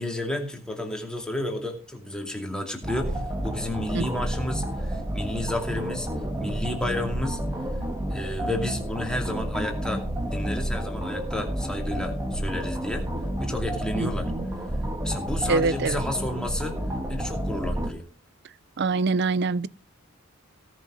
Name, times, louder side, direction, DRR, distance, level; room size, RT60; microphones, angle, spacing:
voice 1, 0.0-6.1 6.4-7.4 8.1-10.0 10.3-13.1 13.4-14.3 15.0-16.8 17.1-18.1, left 1 dB, 5° left, 2.5 m, -31 dB
sound 1, 2.8-17.9, equal, 15° right, 2.0 m, -30 dB
voice 2, 13.9-14.4 15.5-16.0 18.8-19.7, right 4 dB, 55° right, 0.5 m, -25 dB
17.5 x 6.2 x 6.1 m
head